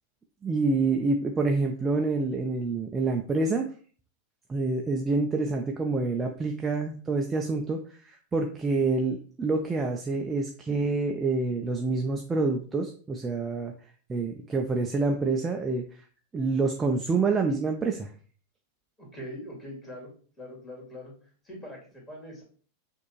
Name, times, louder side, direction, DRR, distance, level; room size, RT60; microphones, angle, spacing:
voice 1, 0.4-3.7 4.5-13.7 14.1-15.8 16.3-18.1, right 3 dB, 15° right, 2 dB, 0.5 m, -27 dB
voice 2, 19.0-20.1 20.4-21.1 21.4-22.4, equal, 20° left, -2 dB, 2.0 m, -42 dB
6.2 x 2.7 x 2.9 m, 0.41 s
figure-of-eight pair, 90°, 0 cm